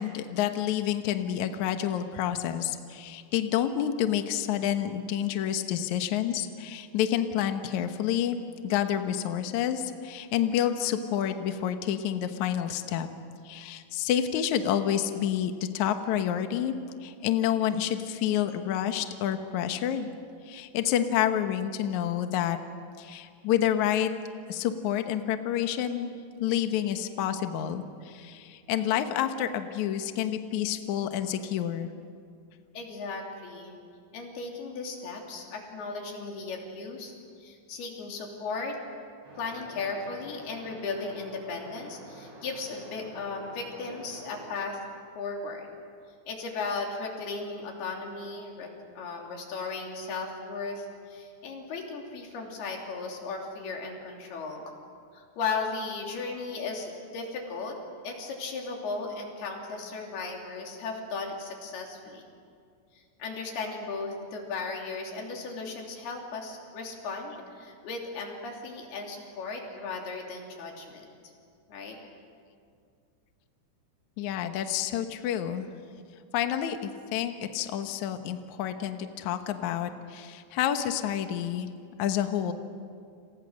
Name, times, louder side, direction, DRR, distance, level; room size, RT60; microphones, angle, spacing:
voice 1, 0.0-8.4 8.6-13.1 13.4-16.7 17.0-20.1 20.5-22.6 23.0-24.1 24.5-26.1 26.4-31.9 74.2-75.7 76.3-81.7 82.0-82.5, left 10 dB, 85° left, 7 dB, 1.6 m, -29 dB
voice 2, 32.7-33.8 34.1-37.1 37.4-38.8 39.4-44.8 45.2-45.7 46.3-54.7 55.1-57.8 58.0-62.3 62.9-71.1 71.7-72.0, left 4 dB, 60° left, 1 dB, 4.9 m, -36 dB
sound 1, 39.2-44.5, right 1 dB, 65° right, 9.6 m, -48 dB
30.0 x 27.5 x 6.4 m, 2.3 s
omnidirectional pair, 5.3 m